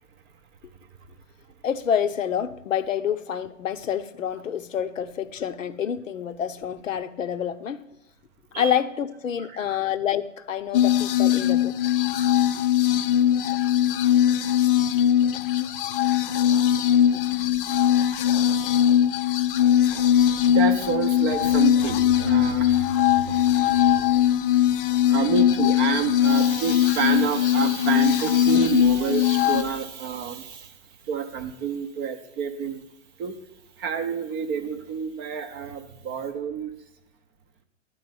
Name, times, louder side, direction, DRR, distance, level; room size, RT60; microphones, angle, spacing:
voice 1, 1.6-7.9 8.6-11.7, left 9 dB, 80° left, 0.7 m, -27 dB
sound 1, 10.7-29.6, left 11 dB, 45° left, 0.5 m, -21 dB
voice 2, 13.6-14.0 17.0-17.6 20.0-24.4 24.7-30.7 31.1-32.8 33.2-33.4 33.8-36.7, right 7 dB, 20° right, 0.5 m, -29 dB
10.5 x 4.3 x 7.7 m
hypercardioid pair, 125°, 38 cm